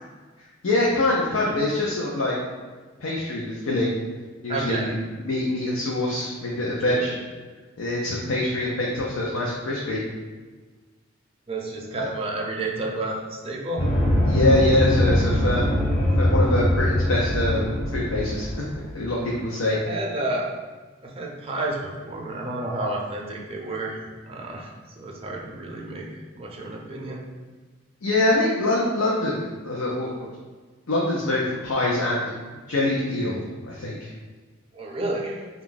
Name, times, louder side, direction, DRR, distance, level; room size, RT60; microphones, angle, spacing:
voice 1, 0.6-2.4 3.0-3.9 4.4-7.1 7.8-10.0 12.0-12.1 14.2-15.8 16.2-17.6 17.9-18.5 18.9-19.8 28.0-30.3 30.9-32.2 32.7-33.4 33.7-34.1, left 2 dB, 85° left, -4 dB, 0.6 m, -24 dB
voice 2, 4.5-4.9 6.9-7.0 11.5-13.9 19.7-20.5 21.0-24.0 24.3-27.2 34.7-35.4, right 2 dB, 25° right, -1 dB, 0.5 m, -30 dB
sound 1, 13.8-18.9, equal, 25° left, 0.6 m, -22 dB
3.4 x 2.4 x 3.8 m, 1.4 s
head